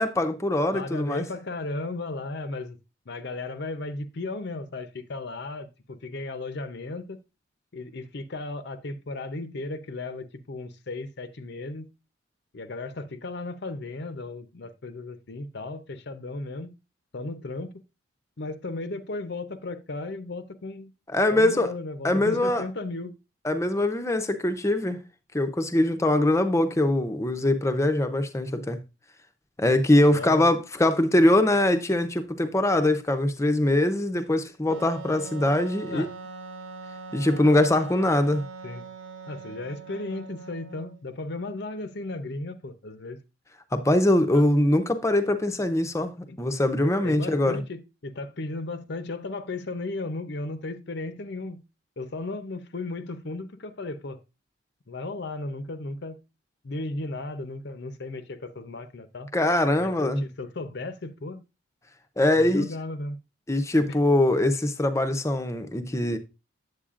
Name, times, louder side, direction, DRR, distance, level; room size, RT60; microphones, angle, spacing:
voice 1, 0.0-1.2 21.1-21.7 22.0-22.7 23.4-25.0 25.3-28.8 29.6-36.1 37.1-38.4 43.7-47.6 59.3-60.3 62.2-62.7 63.5-66.2, left 1 dB, 15° left, 0.6 m, -22 dB
voice 2, 0.7-2.8 3.1-7.2 7.7-11.9 12.5-16.8 17.1-17.8 18.4-20.9 21.3-23.2 30.1-30.6 35.9-36.1 38.6-38.9 39.3-43.2 44.3-44.5 46.3-46.4 47.0-51.6 52.0-54.2 54.9-56.2 56.6-59.3 59.8-61.4 62.3-63.2 63.9-64.0, left 2 dB, 55° left, 0.6 m, -35 dB
Wind instrument woodwind instrument, 34.7-41.1, right 4 dB, 65° right, 1.1 m, -42 dB
8.5 x 8.0 x 2.4 m
head